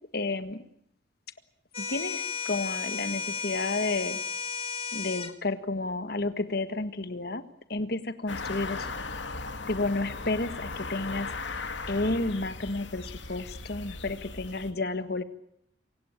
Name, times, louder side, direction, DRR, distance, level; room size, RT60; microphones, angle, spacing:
voice 1, 0.1-0.6 1.8-4.2 4.9-8.9 9.7-11.3 11.9-15.2, left 2 dB, 60° left, 11 dB, 1.7 m, -31 dB
sound 1, 1.7-5.3, left 6 dB, 30° left, 1.8 m, -34 dB
sound 2, 8.3-14.7, left 3 dB, 85° left, 2.3 m, -37 dB
27.5 x 17.0 x 8.9 m, 0.72 s
head